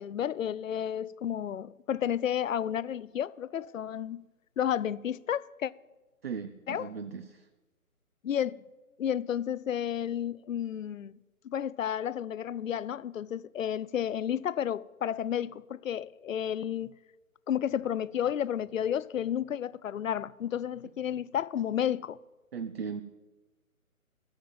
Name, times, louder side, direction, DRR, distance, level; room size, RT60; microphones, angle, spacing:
voice 1, 0.0-4.2 4.6-5.7 6.7-6.9 8.2-8.6 9.0-11.1 11.4-16.9 17.5-22.2, left 9 dB, 65° left, 0.5 m, -32 dB
voice 2, 6.2-7.5 22.5-23.0, right 6 dB, 45° right, 0.7 m, -37 dB
14.5 x 7.3 x 9.4 m
figure-of-eight pair, 155°, 43 cm